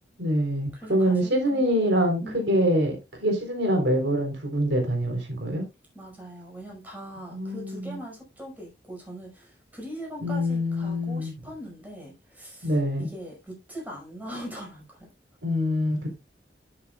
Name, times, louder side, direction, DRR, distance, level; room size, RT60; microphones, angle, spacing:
voice 1, 0.2-5.6 7.3-8.0 10.2-11.3 12.6-13.1 15.4-16.1, equal, 80° right, 3.9 m, -25 dB
voice 2, 0.7-1.8 2.2-2.5 5.9-15.1, equal, 10° right, 5.5 m, -41 dB
10.5 x 10.0 x 2.4 m
head